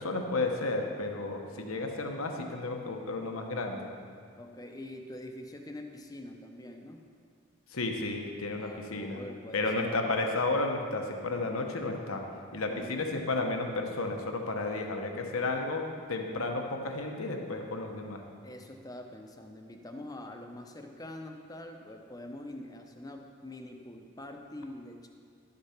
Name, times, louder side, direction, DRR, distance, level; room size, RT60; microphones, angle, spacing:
voice 1, 0.0-3.9 7.7-9.2 9.5-12.2 12.5-15.8 16.1-18.2, left 2 dB, 80° left, 3 dB, 1.1 m, -32 dB
voice 2, 1.5-2.0 4.3-7.0 8.6-10.1 12.5-13.1 18.4-25.1, left 1 dB, 15° left, 4 dB, 0.7 m, -45 dB
11.5 x 6.6 x 5.8 m, 2.2 s
head